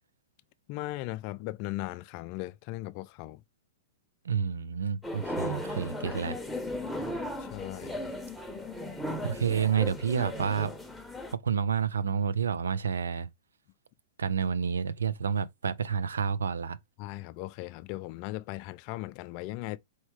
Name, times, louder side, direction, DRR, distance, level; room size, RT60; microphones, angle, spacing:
voice 1, 0.7-3.4 7.4-8.1 17.0-19.8, left 18 dB, 45° left, 0.4 m, -38 dB
voice 2, 4.3-6.4 9.2-10.7 11.4-13.3 14.2-16.8, right 7 dB, 90° right, 0.5 m, -29 dB
sound 1, 5.0-11.3, left 1 dB, 5° left, 0.9 m, -36 dB
4.5 x 3.1 x 3.2 m
hypercardioid pair, 125°, 0 cm